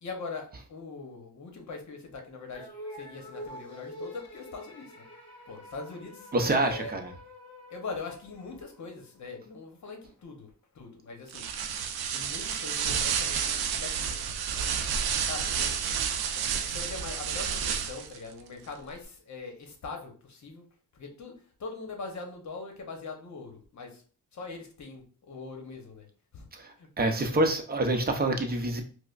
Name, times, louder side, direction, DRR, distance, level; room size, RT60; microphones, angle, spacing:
voice 1, 0.0-5.0 5.5-6.9 7.7-10.5 10.7-11.5 12.1-14.8 15.2-15.8 16.3-20.6 20.9-21.3 21.6-24.0 24.3-26.1 26.3-26.5 26.8-27.4, left 4 dB, 50° left, 1.0 m, -42 dB
sound 1, 2.5-9.1, equal, 15° left, 1.5 m, -46 dB
voice 2, 6.3-7.1 26.5-28.8, right 2 dB, 25° right, 0.6 m, -27 dB
sound 2, 11.3-18.2, right 7 dB, 85° right, 0.5 m, -30 dB
4.7 x 2.1 x 2.5 m
cardioid pair, 110°, 37 cm